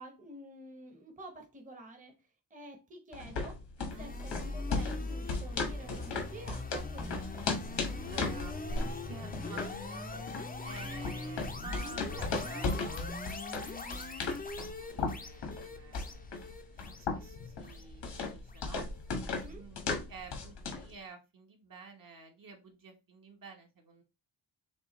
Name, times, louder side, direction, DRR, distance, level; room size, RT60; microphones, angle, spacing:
voice 1, 0.0-2.1 2.5-3.6 4.0-7.3 19.4-19.6, right 1 dB, 20° right, 0.9 m, -49 dB
sound 1, 3.1-20.9, left 3 dB, 85° left, 1.4 m, -37 dB
voice 2, 3.8-4.1 8.0-10.1 10.6-18.8 19.5-24.0, right 4 dB, 50° right, 1.2 m, -51 dB
sound 2, 4.0-19.1, left 3 dB, 20° left, 0.5 m, -41 dB
6.8 x 2.4 x 3.0 m
wide cardioid pair, 160°, 41 cm